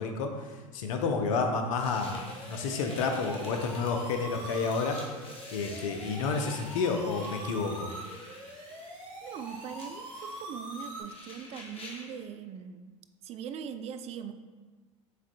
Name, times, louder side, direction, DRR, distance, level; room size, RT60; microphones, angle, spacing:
voice 1, 0.0-5.0 5.5-7.9, left 4 dB, 75° left, 4 dB, 0.6 m, -30 dB
sound 1, 1.8-12.2, left 2 dB, 35° left, 1.3 m, -49 dB
sound 2, 2.0-11.0, right 1 dB, 70° right, 1.3 m, -43 dB
voice 2, 9.2-12.9 13.2-14.3, right 8 dB, 40° right, 10 dB, 0.4 m, -41 dB
6.5 x 3.7 x 2.2 m, 1.4 s
hypercardioid pair, 75°, 17 cm